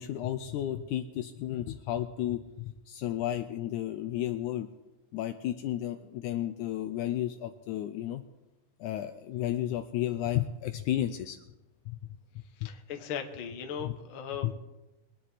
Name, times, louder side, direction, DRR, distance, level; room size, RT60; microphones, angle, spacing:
voice 1, 0.0-4.7 5.1-8.2 8.8-11.4 11.9-12.0 12.6-12.7 13.8-14.0 14.4-14.5, left 12 dB, 80° left, 9 dB, 1.9 m, -33 dB
voice 2, 12.6-14.5, left 7 dB, 55° left, 4 dB, 1.6 m, -38 dB
23.0 x 10.0 x 4.2 m, 1.0 s
omnidirectional pair, 3.8 m